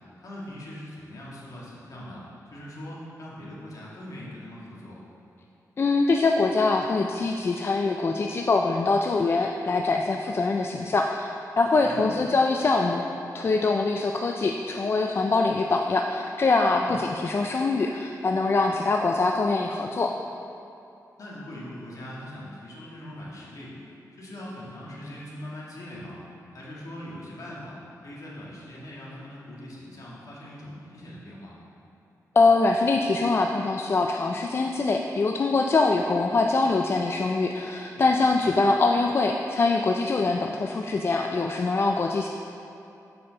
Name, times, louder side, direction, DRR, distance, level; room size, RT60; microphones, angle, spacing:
voice 1, 0.2-2.2 2.5-5.0 11.8-12.2 16.8-17.0 21.2-23.8 24.2-26.2 26.5-27.8 28.0-31.6 38.4-38.5, left 1 dB, 60° left, -6 dB, 1.7 m, -41 dB
voice 2, 5.8-11.3 11.6-13.0 13.3-20.1 32.4-42.3, left 3 dB, 40° left, 2 dB, 0.3 m, -23 dB
7.8 x 5.6 x 3.9 m, 2.7 s
wide cardioid pair, 110°, 6 cm